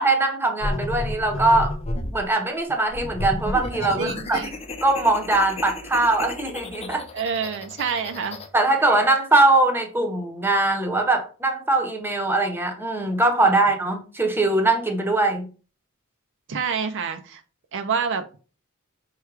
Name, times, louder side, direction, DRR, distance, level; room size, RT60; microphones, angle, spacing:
voice 1, 0.0-1.8 2.1-4.4 4.8-7.0 8.5-15.5, right 2 dB, 10° right, 4 dB, 0.7 m, -21 dB
sound 1, 0.6-2.2 2.9-8.5, left 2 dB, 30° left, 0.6 m, -31 dB
voice 2, 4.0-4.5 7.1-8.4 16.5-17.4 17.7-18.4, right 6 dB, 60° right, 8 dB, 0.5 m, -27 dB
4.7 x 2.2 x 4.7 m, 0.35 s
head